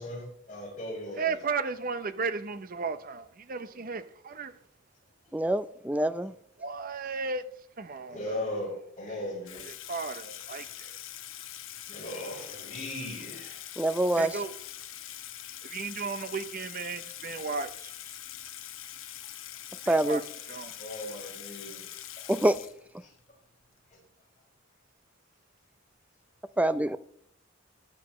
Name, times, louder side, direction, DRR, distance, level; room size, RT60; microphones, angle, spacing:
voice 1, 0.0-1.4 8.1-9.6 11.9-13.6 19.1-19.2 20.8-21.9 22.2-22.3 23.0-23.1, left 1 dB, 35° left, 5.8 m, -38 dB
voice 2, 1.2-4.5 6.6-7.4 7.8-8.5 9.6-10.9 14.2-14.5 15.6-17.9 19.8-20.2 20.5-20.7, right 4 dB, 45° right, 0.7 m, -34 dB
voice 3, 5.3-6.3 13.8-14.3 19.9-20.2 22.3-22.6 26.6-27.0, right 1 dB, 5° right, 0.4 m, -25 dB
Water tap faucet / Sink (filling or washing), 9.5-23.2, left 11 dB, 85° left, 1.0 m, -43 dB
14.5 x 10.5 x 3.1 m
head